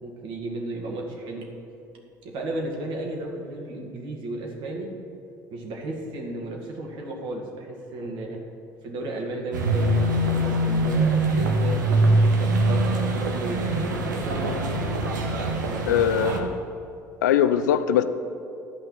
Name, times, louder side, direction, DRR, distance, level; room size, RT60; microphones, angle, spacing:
voice 1, 0.0-1.5 2.2-4.9 5.5-8.4 8.8-14.7 15.6-16.0, right 2 dB, 55° right, 0 dB, 2.1 m, -34 dB
sound 1, 9.5-16.4, right 2 dB, 80° right, 1.0 m, -23 dB
voice 2, 15.9-16.5 17.2-18.0, left 9 dB, 70° left, 11 dB, 0.5 m, -21 dB
11.5 x 5.5 x 7.8 m, 2.6 s
figure-of-eight pair, 60°, 10 cm